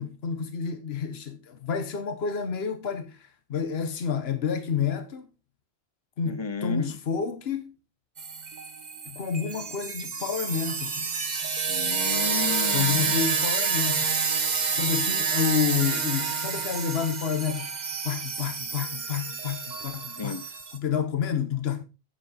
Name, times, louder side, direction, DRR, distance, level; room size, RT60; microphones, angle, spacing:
voice 1, 0.0-5.3 6.2-7.8 9.1-11.1 12.7-14.1 14.7-17.7 18.0-20.4 20.7-21.8, left 7 dB, 75° left, 1.3 m, -29 dB
voice 2, 6.3-6.9 11.7-13.2 20.1-20.5, left 5 dB, 30° left, 0.6 m, -33 dB
sound 1, 8.2-20.8, right 5 dB, 45° right, 1.1 m, -29 dB
8.9 x 8.3 x 4.1 m
omnidirectional pair, 1.0 m